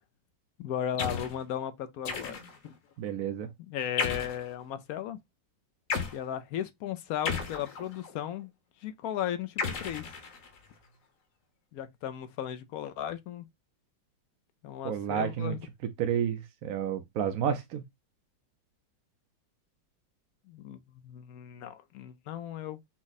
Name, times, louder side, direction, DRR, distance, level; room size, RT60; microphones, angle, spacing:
voice 1, 0.6-2.7 3.7-5.2 6.1-8.5 8.8-10.1 11.7-13.4 14.6-15.6 20.5-20.8 21.0-22.8, left 10 dB, 70° left, 0.8 m, -36 dB
sound 1, 1.0-1.4 2.0-2.7 4.0-4.5 5.9-6.2 7.2-8.1 9.6-10.6, left 5 dB, 50° left, 1.3 m, -34 dB
voice 2, 3.0-3.5 14.8-15.5 16.0-17.8, right 9 dB, 65° right, 0.9 m, -30 dB
6.1 x 2.1 x 3.9 m
omnidirectional pair, 1.9 m